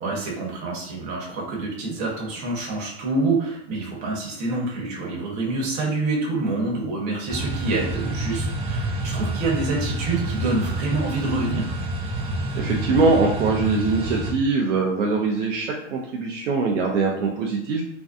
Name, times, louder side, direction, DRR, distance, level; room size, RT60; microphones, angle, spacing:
voice 1, 0.0-11.7, right 3 dB, 50° right, -2 dB, 1.1 m, -27 dB
sound 1, 7.3-14.3, right 1 dB, 15° right, 0.5 m, -28 dB
voice 2, 12.6-17.8, right 4 dB, 80° right, -1 dB, 0.6 m, -22 dB
2.6 x 2.1 x 2.4 m, 0.78 s
hypercardioid pair, 105°, 36 cm